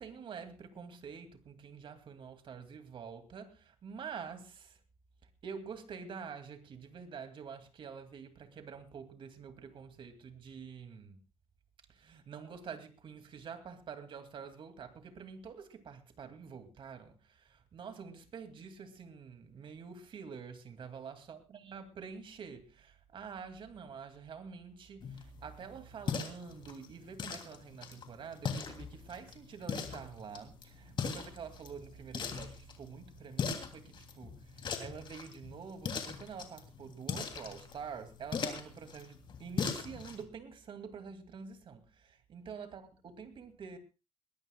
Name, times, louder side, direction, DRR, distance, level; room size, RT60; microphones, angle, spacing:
voice 1, 0.0-4.8 5.4-11.2 11.9-43.8, right 6 dB, 55° right, 2.6 m, -47 dB
sound 1, 25.0-40.2, left 6 dB, 50° left, 3.0 m, -41 dB
22.0 x 18.5 x 2.4 m
cardioid pair, 125°, 10 cm